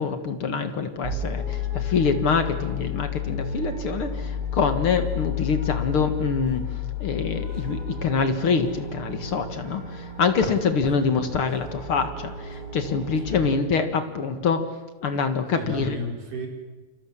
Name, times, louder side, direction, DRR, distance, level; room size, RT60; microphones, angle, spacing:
voice 1, 0.0-6.6 7.0-14.6 15.0-16.0, left 5 dB, 45° left, 8 dB, 1.9 m, -25 dB
sound 1, 1.0-13.3, left 6 dB, 20° right, 8.3 m, -32 dB
voice 2, 13.2-13.5 13.9-14.0 15.5-16.5, equal, 55° right, 2 dB, 6.3 m, -34 dB
29.5 x 25.0 x 7.4 m, 1.2 s
omnidirectional pair, 4.5 m